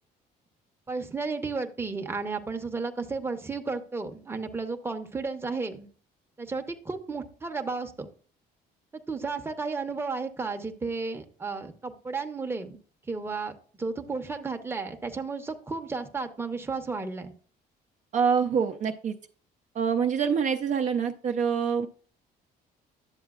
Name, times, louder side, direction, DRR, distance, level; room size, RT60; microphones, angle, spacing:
voice 1, 0.9-5.9 6.4-8.1 9.1-12.8 13.1-17.3, right 4 dB, 15° right, 5 dB, 0.8 m, -33 dB
voice 2, 18.1-19.2 19.8-21.9, right 6 dB, 45° right, 4 dB, 0.6 m, -25 dB
10.5 x 7.2 x 2.4 m, 0.42 s
cardioid pair, 110°, 17 cm